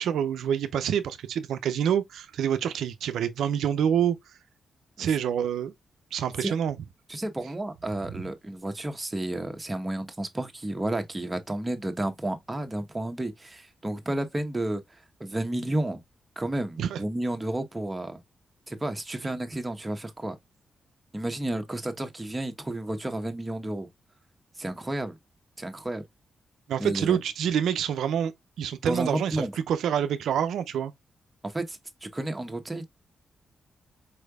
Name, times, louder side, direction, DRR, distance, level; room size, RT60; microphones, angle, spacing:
voice 1, 0.0-4.2 5.0-5.7 6.1-6.8 8.1-8.2 16.8-17.0 26.7-28.3 28.6-30.9, right 9 dB, 85° right, 0.4 m, -27 dB
voice 2, 7.1-14.8 15.2-16.0 16.4-18.2 18.7-20.4 21.1-23.9 24.6-25.2 25.6-26.0 26.8-27.2 28.8-29.6 31.4-32.9, right 1 dB, 20° right, 0.9 m, -31 dB
4.5 x 3.2 x 2.2 m
cardioid pair, 70°, 0 cm